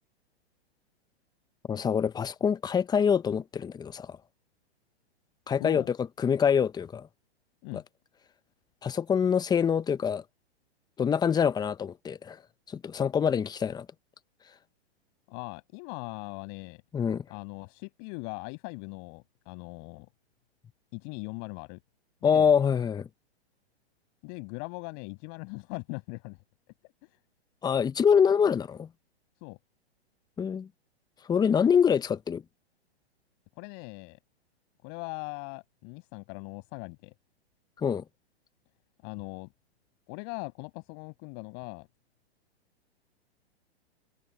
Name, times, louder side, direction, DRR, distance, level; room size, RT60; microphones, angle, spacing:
voice 1, 1.7-4.2 5.5-7.1 7.7-7.8 8.8-10.2 11.0-12.4 12.7-13.9 16.9-17.2 22.2-23.1 27.6-28.9 30.4-30.7 31.3-32.4 37.8-38.0, left 7 dB, 10° left, 1.0 m, -25 dB
voice 2, 5.6-5.9 7.6-7.8 15.3-16.8 17.3-20.1 20.9-21.8 22.2-22.5 24.2-26.4 27.0-27.1 29.4-29.6 33.6-34.2 34.8-37.1 39.0-39.5 40.1-41.9, left 39 dB, 40° left, 7.0 m, -40 dB
hypercardioid pair, 125°, 33 cm